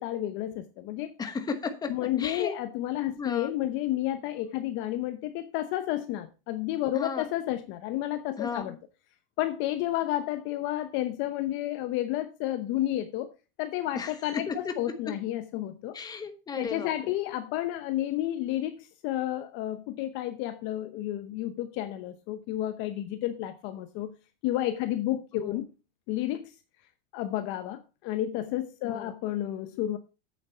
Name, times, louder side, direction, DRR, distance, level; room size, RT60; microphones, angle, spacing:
voice 1, 0.0-1.1 1.9-8.7 9.4-13.3 13.6-16.0 16.5-24.1 24.4-25.7 26.1-26.5 27.1-30.0, left 13 dB, 40° left, 0.8 m, -31 dB
voice 2, 1.2-1.9 2.2-2.6 3.2-3.5 6.9-7.3 8.4-8.8 13.9-14.1 14.5-14.7 15.9-17.1 25.3-25.6 28.9-29.2, left 5 dB, 15° left, 1.2 m, -34 dB
8.2 x 7.6 x 4.4 m
supercardioid pair, 150°, 29 cm